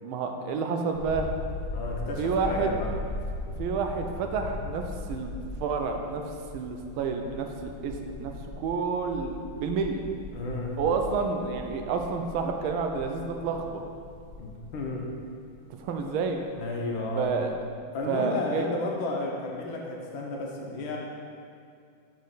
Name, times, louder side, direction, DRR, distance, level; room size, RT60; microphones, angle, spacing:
voice 1, 0.0-1.3 2.2-2.7 3.6-5.3 5.6-8.3 8.6-10.0 10.8-13.8 15.8-16.4 17.1-17.5 18.1-18.7, right 5 dB, 80° right, 4 dB, 1.4 m, -29 dB
sound 1, 0.9-16.7 17.0-17.6, left 2 dB, 55° left, 0.8 m, -39 dB
voice 2, 1.7-2.9 10.3-10.8 14.4-15.1 16.5-17.3 17.9-21.0, left 2 dB, 70° left, -1 dB, 1.5 m, -33 dB
6.2 x 5.2 x 3.9 m, 2.3 s
omnidirectional pair, 2.3 m